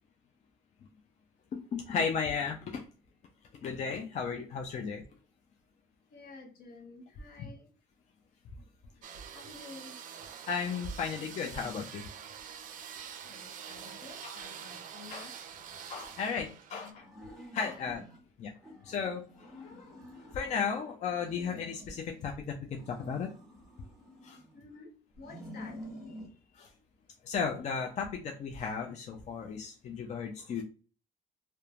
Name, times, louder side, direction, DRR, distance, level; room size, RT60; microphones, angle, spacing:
voice 1, 1.5-2.8 3.6-5.0 7.4-7.5 10.5-12.1 14.2-14.4 15.1-15.3 15.9-17.1 17.5-18.0 18.4-18.5 18.8-23.3 24.2-24.4 26.5-26.7 27.2-30.6, left 6 dB, 45° left, 3 dB, 0.4 m, -35 dB
voice 2, 6.1-7.7 9.3-10.0 11.6-11.7 12.4-12.7 13.3-15.4 16.3-16.5 16.8-16.9 17.6-17.9 24.5-24.9 25.2-25.8, left 4 dB, 65° left, 1 dB, 0.8 m, -51 dB
sound 1, 9.0-16.9, right 8 dB, 50° right, 0.4 m, -46 dB
sound 2, 17.0-18.2 18.6-20.7 21.1-22.3 22.7-24.7 25.1-26.3, equal, ahead, 1.2 m, -49 dB
3.0 x 2.1 x 2.4 m, 0.38 s
cardioid pair, 110°, 17 cm